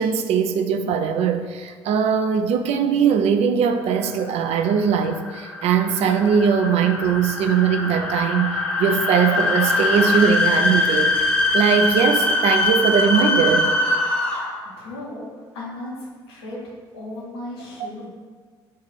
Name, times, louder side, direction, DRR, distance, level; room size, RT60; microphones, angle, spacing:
voice 1, 0.0-8.5 8.8-11.1 11.5-13.7, right 7 dB, 55° right, 7 dB, 0.4 m, -20 dB
sound 1, 4.0-14.7, left 2 dB, 5° left, 0.9 m, -22 dB
voice 2, 14.1-14.5 14.8-15.2 15.5-16.6 16.9-18.1, left 1 dB, 85° left, -4 dB, 0.9 m, -36 dB
3.8 x 2.5 x 4.0 m, 1.5 s
hypercardioid pair, 55°, 13 cm